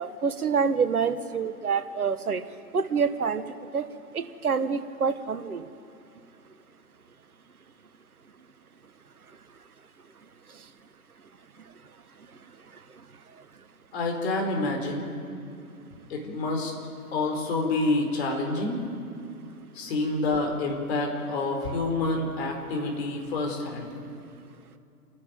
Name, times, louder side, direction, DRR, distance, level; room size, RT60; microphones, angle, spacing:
voice 1, 0.0-2.4 2.7-3.4 3.7-3.9 4.1-5.6, right 5 dB, 65° right, 11 dB, 1.5 m, -26 dB
voice 2, 13.9-15.0 16.1-16.7 17.1-18.8 19.7-23.9, left 2 dB, 40° left, 2 dB, 4.6 m, -28 dB
28.0 x 12.0 x 9.3 m, 2.6 s
figure-of-eight pair, 125°, 47 cm